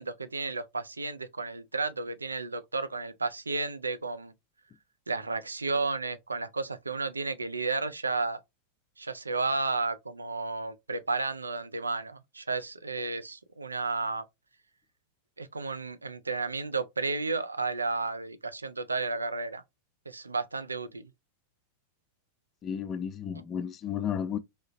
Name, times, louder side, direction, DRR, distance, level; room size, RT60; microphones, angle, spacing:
voice 1, 0.0-4.3 5.1-8.4 9.0-14.2 15.4-19.6 20.1-21.1, right 3 dB, 80° right, 0.3 m, -32 dB
voice 2, 22.6-24.4, left 8 dB, 25° left, 0.4 m, -33 dB
3.1 x 2.8 x 2.5 m
figure-of-eight pair, 90°, 0 cm